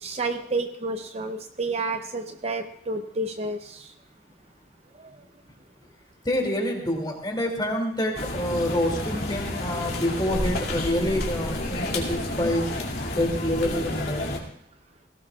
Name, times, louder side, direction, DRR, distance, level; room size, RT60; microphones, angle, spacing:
voice 1, 0.0-3.9 5.0-5.2, right 2 dB, 35° right, 7 dB, 0.7 m, -30 dB
voice 2, 6.2-12.7 13.2-14.3, left 1 dB, 25° left, 1 dB, 2.8 m, -27 dB
sound 1, 8.1-14.4, left 1 dB, 60° left, 2.7 m, -30 dB
19.5 x 17.0 x 2.4 m, 0.67 s
head